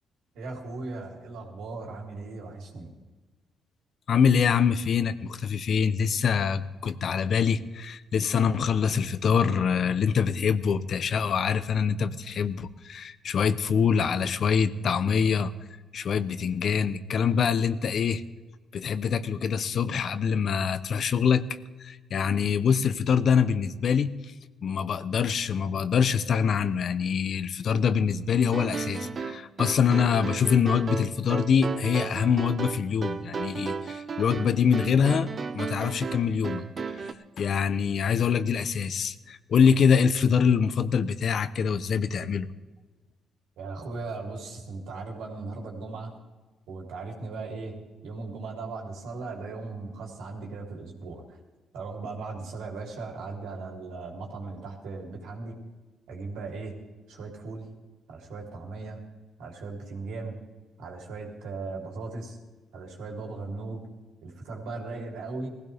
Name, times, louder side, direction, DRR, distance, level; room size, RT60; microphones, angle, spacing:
voice 1, 0.3-2.9 43.6-46.1 46.7-47.8 48.0-51.4 51.7-55.6 56.1-56.7 57.1-57.7 58.1-59.0 59.4-60.4 60.8-62.4 62.7-63.9 64.2-65.5, right 3 dB, 85° right, 0 dB, 3.5 m, -37 dB
voice 2, 4.1-15.5 15.9-18.2 18.7-21.4 21.8-24.3 24.6-36.6 36.9-42.5, left 7 dB, 60° left, 13 dB, 0.8 m, -25 dB
sound 1, 28.5-37.1, right 5 dB, 45° right, 1.0 m, -34 dB
19.5 x 16.0 x 3.5 m, 1.3 s
cardioid pair, 90°, 0 cm